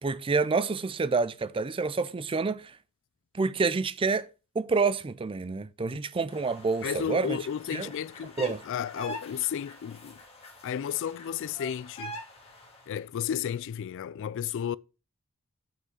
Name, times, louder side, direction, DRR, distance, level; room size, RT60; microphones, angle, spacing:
voice 1, 0.0-2.7 3.3-4.3 4.6-7.4 7.7-7.9 8.4-8.6, right 4 dB, 25° right, 0.4 m, -28 dB
sound 1, 6.3-12.9, equal, 30° left, 2.0 m, -45 dB
voice 2, 6.8-10.2 10.6-12.2 12.9-14.8, left 9 dB, 60° left, 0.3 m, -33 dB
6.0 x 5.4 x 6.4 m
head